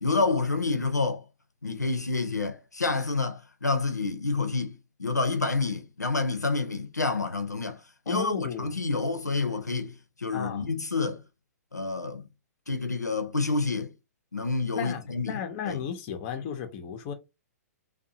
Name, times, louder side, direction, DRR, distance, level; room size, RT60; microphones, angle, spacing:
voice 1, 0.0-1.2 1.6-9.9 10.2-11.2 11.7-12.3 12.7-13.9 14.3-15.4 15.7-15.8, left 3 dB, 85° left, 0.6 m, -28 dB
voice 2, 8.1-8.7 10.3-10.8 14.7-17.1, left 8 dB, 35° left, 0.6 m, -35 dB
2.6 x 2.2 x 2.7 m
figure-of-eight pair, 115°, 9 cm